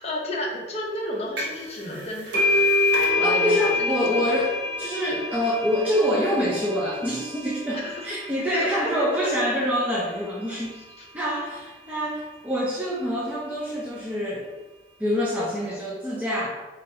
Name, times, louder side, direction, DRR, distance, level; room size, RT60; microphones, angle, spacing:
voice 1, 0.0-2.7 3.2-4.4 7.7-8.2 8.5-9.3 10.7-11.1, left 1 dB, 35° left, -1 dB, 0.8 m, -32 dB
sound 1, 1.4-1.7 1.9-9.3, left 2 dB, 80° right, 1.1 m, -26 dB
voice 2, 3.2-10.8 11.1-14.5 15.0-16.5, equal, 10° right, -6 dB, 0.5 m, -26 dB
4.2 x 3.9 x 2.7 m, 1.3 s
head